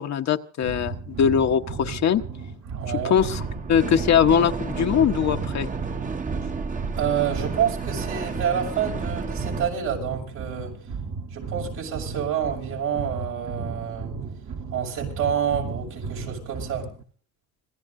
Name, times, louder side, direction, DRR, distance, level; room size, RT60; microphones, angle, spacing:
voice 1, 0.0-2.2 3.0-3.4 3.7-5.7, left 8 dB, 60° left, 1.1 m, -21 dB
sound 1, 0.6-17.0, right 4 dB, 55° right, 1.5 m, -35 dB
voice 2, 2.7-3.2 7.0-10.8 11.3-14.1 14.7-16.9, right 8 dB, 85° right, 6.4 m, -28 dB
sound 2, 3.2-9.7, right 4 dB, 25° right, 1.0 m, -32 dB
26.0 x 17.0 x 2.7 m
cardioid pair, 90°, 30 cm